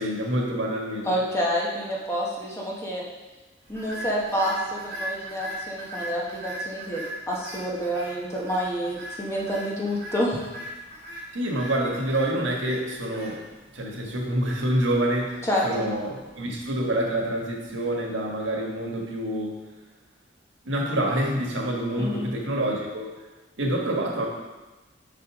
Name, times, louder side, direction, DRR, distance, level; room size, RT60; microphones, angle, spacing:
voice 1, 0.0-1.1 11.3-13.4 13.7-19.6 20.6-23.1 23.6-24.3, right 1 dB, 80° right, -1 dB, 1.5 m, -27 dB
voice 2, 1.0-3.0 3.7-10.4 15.4-15.9 22.0-22.3, equal, 15° left, -4 dB, 1.4 m, -28 dB
sound 1, 3.7-18.0, right 1 dB, 55° right, 2.7 m, -40 dB
6.7 x 5.9 x 4.9 m, 1.1 s
head